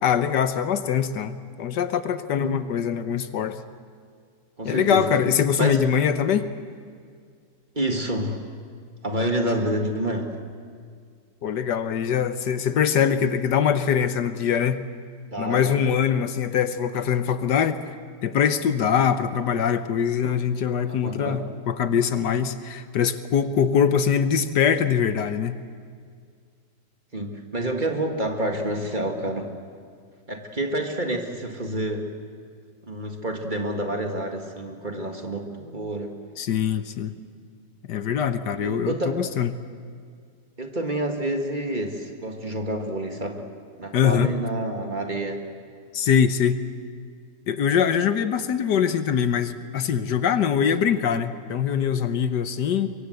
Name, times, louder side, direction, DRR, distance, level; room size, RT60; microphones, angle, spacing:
voice 1, 0.0-3.6 4.6-6.5 11.4-14.8 15.4-17.9 18.2-21.4 21.7-25.6 36.4-37.1 37.9-39.5 43.9-44.3 45.9-46.6 47.5-52.9, left 8 dB, 75° left, 11 dB, 1.6 m, -23 dB
voice 2, 4.6-5.1 5.6-5.8 7.8-8.4 9.0-10.4 15.3-15.8 20.9-21.4 27.1-29.5 30.3-32.1 32.9-36.1 38.6-39.2 40.6-43.4 43.8-45.4, right 1 dB, 25° right, 3 dB, 2.0 m, -28 dB
24.0 x 24.0 x 8.0 m, 2.1 s
omnidirectional pair, 1.9 m